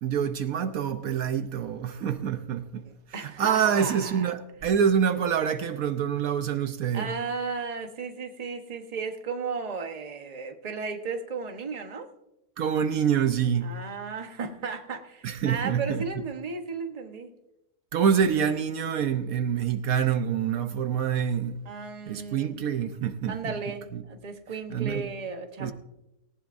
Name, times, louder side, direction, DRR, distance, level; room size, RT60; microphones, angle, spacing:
voice 1, 0.0-7.1 12.6-13.7 15.2-16.2 17.9-21.6 22.1-23.6 23.9-24.0 24.7-25.1 25.6-25.7, right 8 dB, 70° right, 1.2 m, -26 dB
voice 2, 2.8-4.3 6.9-12.1 13.6-17.3 21.7-22.6 23.3-25.7, right 4 dB, 30° right, 1.1 m, -35 dB
18.5 x 18.0 x 2.6 m
omnidirectional pair, 1.6 m